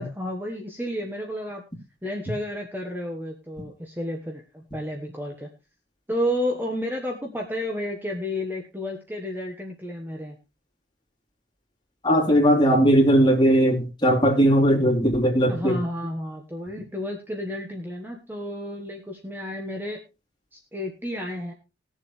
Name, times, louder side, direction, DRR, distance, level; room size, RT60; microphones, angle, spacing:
voice 1, 0.0-1.6 2.0-5.5 6.1-10.4 15.5-20.0 20.5-21.5, left 1 dB, 10° right, 1.2 m, -31 dB
voice 2, 12.0-15.8, equal, 25° left, 3.2 m, -18 dB
19.5 x 7.2 x 3.2 m
head